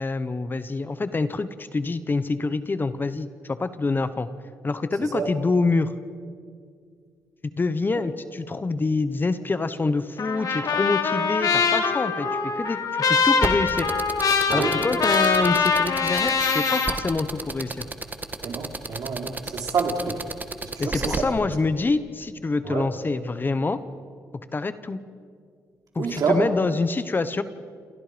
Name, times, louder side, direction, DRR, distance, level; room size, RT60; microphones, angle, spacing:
voice 1, 0.0-4.3 4.6-5.9 7.6-13.9 14.5-17.9 20.8-23.8 24.5-25.0 25.9-27.4, left 3 dB, 30° left, 12 dB, 1.2 m, -26 dB
Trumpet, 10.2-16.9, left 5 dB, 65° left, 3.1 m, -23 dB
sound 1, 13.4-21.2, right 3 dB, 25° right, 1.9 m, -30 dB
voice 2, 18.4-20.2 20.7-21.2 22.6-22.9 26.0-26.5, right 5 dB, 65° right, 2 dB, 4.1 m, -27 dB
28.5 x 28.0 x 5.2 m, 2.1 s
cardioid pair, 85°, 7 cm